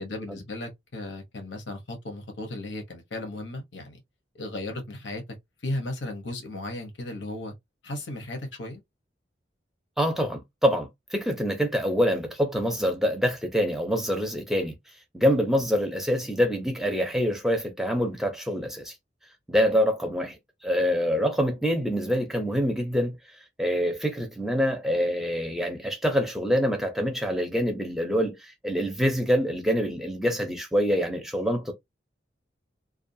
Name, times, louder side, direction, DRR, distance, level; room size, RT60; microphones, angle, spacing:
voice 1, 0.0-4.0 4.3-5.2 5.6-7.5 7.8-8.8, left 1 dB, 90° left, 0.9 m, -35 dB
voice 2, 10.0-14.7 15.1-18.9 19.5-20.4 20.6-23.2 23.6-31.7, equal, ahead, 0.6 m, -25 dB
2.5 x 2.3 x 2.6 m
head